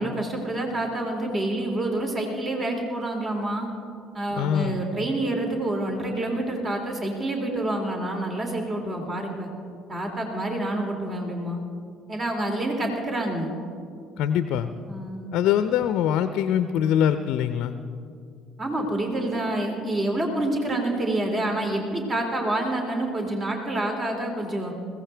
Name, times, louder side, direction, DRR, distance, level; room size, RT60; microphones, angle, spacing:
voice 1, 0.0-3.7 4.1-9.5 9.9-11.6 12.1-13.5 14.9-15.3 18.6-24.7, right 1 dB, 35° right, 2 dB, 2.8 m, -27 dB
voice 2, 4.3-4.9 14.2-14.7 15.3-17.7, left 9 dB, 65° left, 11 dB, 0.6 m, -23 dB
21.5 x 16.5 x 3.4 m, 2.4 s
hypercardioid pair, 55°, 0 cm